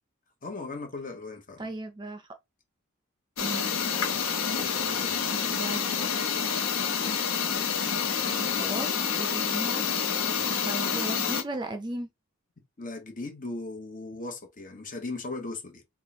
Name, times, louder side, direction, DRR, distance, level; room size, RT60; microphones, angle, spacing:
voice 1, 0.4-1.7 4.5-5.4 10.2-10.5 12.8-15.8, left 3 dB, 40° left, 1.1 m, -38 dB
voice 2, 1.6-2.3 3.4-3.7 5.5-5.8 8.3-9.9 10.6-12.1, right 2 dB, 20° right, 0.4 m, -36 dB
sound 1, 3.4-11.4, left 7 dB, 80° left, 0.8 m, -28 dB
3.7 x 2.4 x 4.2 m
head